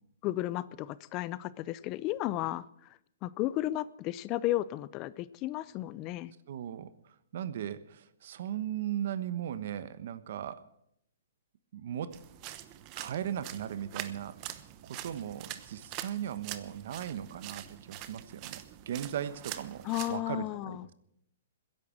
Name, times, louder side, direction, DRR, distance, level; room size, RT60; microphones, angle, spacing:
voice 1, 0.2-2.6 3.2-6.3 19.8-20.9, left 15 dB, 30° left, 18 dB, 0.5 m, -33 dB
voice 2, 6.5-10.7 11.7-12.2 13.0-20.8, right 10 dB, 60° right, 14 dB, 1.1 m, -38 dB
sound 1, 12.1-20.2, right 13 dB, 30° right, 1.0 m, -44 dB
21.0 x 11.0 x 6.3 m, 0.75 s
hypercardioid pair, 150°, 0 cm